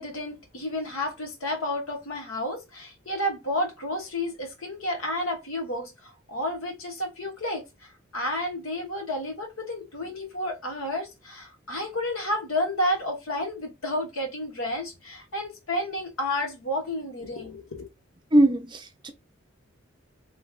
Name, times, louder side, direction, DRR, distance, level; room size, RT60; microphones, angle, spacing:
voice 1, 0.0-17.9, left 1 dB, 85° left, 1.2 m, -31 dB
voice 2, 18.3-19.1, right 1 dB, 20° right, 0.5 m, -21 dB
3.4 x 3.1 x 2.3 m
head